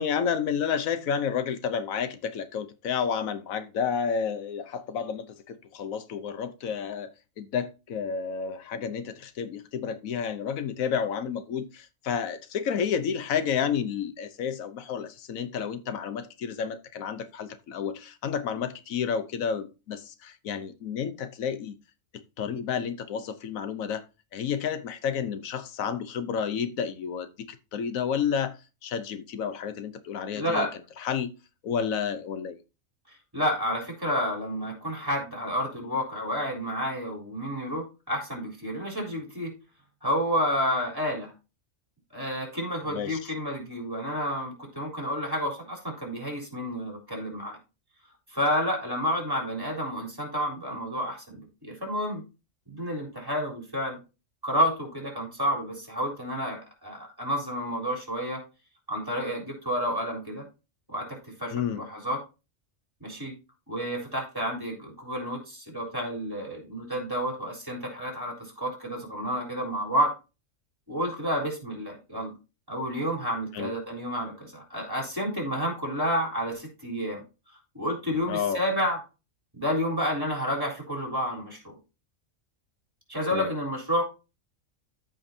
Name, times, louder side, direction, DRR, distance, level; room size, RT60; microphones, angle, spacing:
voice 1, 0.0-7.1 7.4-21.7 22.1-24.0 24.3-28.5 28.8-30.7 31.0-31.3 31.6-32.6 42.9-43.3 61.5-61.8 73.5-73.7 78.3-78.6 83.3-83.5, left 7 dB, 85° left, 1.2 m, -30 dB
voice 2, 30.3-30.7 33.3-39.5 40.0-41.3 42.1-47.6 48.3-52.2 52.7-54.0 54.4-58.4 58.9-60.4 60.9-62.2 63.0-63.3 63.7-70.1 70.9-72.3 72.7-77.2 77.7-79.0 79.5-81.8 83.1-84.0, equal, 15° right, 3.7 m, -30 dB
14.0 x 5.3 x 2.7 m
omnidirectional pair, 1.4 m